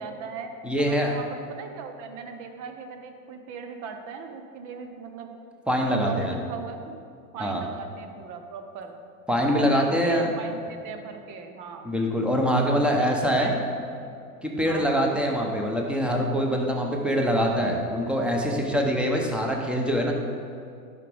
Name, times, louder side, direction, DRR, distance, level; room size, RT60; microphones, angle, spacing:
voice 1, 0.0-0.5 0.8-5.3 5.8-6.9 7.3-9.0 9.6-11.9 12.6-13.6 14.6-15.1, right 5 dB, 45° right, 6 dB, 1.0 m, -38 dB
voice 2, 0.6-1.2 5.7-6.3 7.4-7.6 9.3-10.3 11.8-13.5 14.4-20.1, equal, ahead, 0 dB, 1.0 m, -24 dB
11.0 x 5.0 x 3.6 m, 2.5 s
hypercardioid pair, 105°, 45 cm